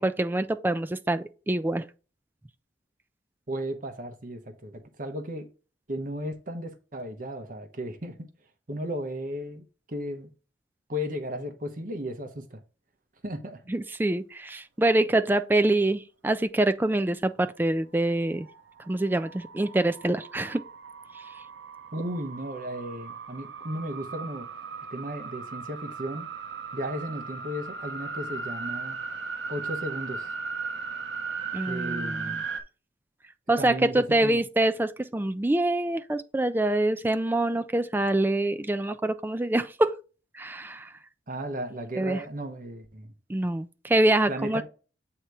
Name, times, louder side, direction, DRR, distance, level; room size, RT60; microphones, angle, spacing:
voice 1, 0.0-1.9 13.7-18.5 18.9-20.6 31.5-32.4 33.5-40.0 40.3-40.9 42.0-42.2 43.3-44.6, right 1 dB, 10° right, 0.3 m, -25 dB
voice 2, 3.5-5.5 5.9-8.3 8.7-10.3 10.9-12.6 13.2-13.6 21.9-24.5 24.9-26.3 26.7-29.0 29.5-30.3 31.6-32.4 33.6-34.4 41.3-43.1 44.3-44.6, equal, 50° right, 0.9 m, -35 dB
sound 1, 18.1-32.6, right 4 dB, 85° right, 0.8 m, -37 dB
7.9 x 2.9 x 4.7 m
head